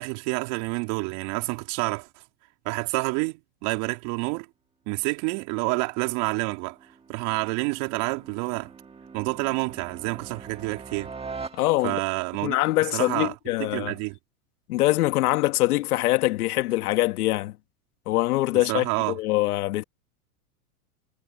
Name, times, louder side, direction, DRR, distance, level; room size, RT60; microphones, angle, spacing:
voice 1, 0.0-2.1 2.6-4.5 4.9-6.8 7.1-8.7 9.1-11.1 11.8-12.5 12.9-13.3 13.6-14.2 18.5-19.2, right 27 dB, 50° right, 3.2 m, -28 dB
sound 1, 5.9-12.2, right 4 dB, 10° right, 1.8 m, -43 dB
voice 2, 11.5-12.0 12.4-13.9 14.7-17.6 18.1-19.8, left 17 dB, 75° left, 1.9 m, -24 dB
supercardioid pair, 130°, 45 cm